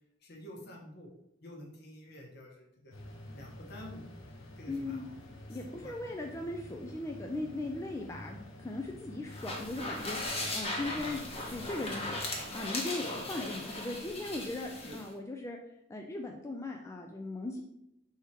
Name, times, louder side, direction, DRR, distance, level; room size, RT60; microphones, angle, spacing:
voice 1, 0.2-1.1 1.4-2.9 3.3-4.0 4.6-5.1 5.5-6.0 8.2-8.4 10.9-11.1 14.7-15.0, left 1 dB, 55° left, -1 dB, 1.0 m, -49 dB
sound 1, 2.9-12.5, left 1 dB, 85° left, 0.8 m, -49 dB
voice 2, 4.7-5.1 5.5-12.2 12.5-15.6 15.9-17.6, left 2 dB, 15° left, 1 dB, 0.3 m, -38 dB
sound 2, 9.3-15.1, left 2 dB, 30° left, 0.9 m, -38 dB
3.5 x 2.9 x 4.6 m, 0.82 s
head